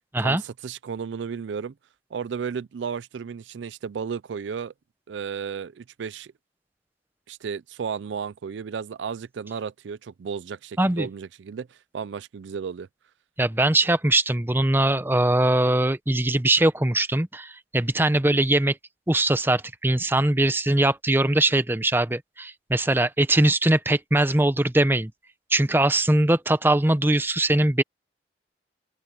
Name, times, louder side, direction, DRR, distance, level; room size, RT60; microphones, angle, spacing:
voice 1, 0.2-1.7 2.1-4.7 5.1-6.3 7.3-12.9, right 6 dB, 85° right, 0.4 m, -33 dB
voice 2, 10.8-11.1 13.4-18.8 19.1-25.1 25.5-27.8, right 1 dB, 10° right, 0.7 m, -21 dB
open air
head